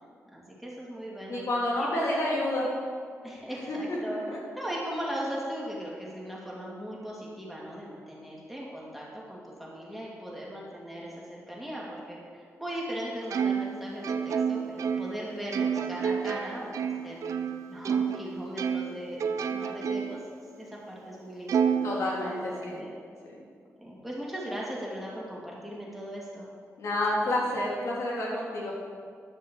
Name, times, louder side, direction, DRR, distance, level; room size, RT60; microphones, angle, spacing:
voice 1, 0.3-1.4 1.8-2.8 3.2-4.2 4.5-17.3 17.7-20.2 20.6-22.9 23.8-26.5, equal, ahead, -5 dB, 2.8 m, -38 dB
voice 2, 1.3-2.7 3.7-4.4 21.8-22.9 23.3-23.4 26.8-28.7, left 1 dB, 75° left, -4 dB, 3.3 m, -29 dB
Plucked string instrument, 13.3-18.2 18.6-20.3 20.7-20.8 21.5-22.6, right 7 dB, 80° right, 0.5 m, -30 dB
11.0 x 6.3 x 7.4 m, 2.1 s
wide cardioid pair, 120°, 5 cm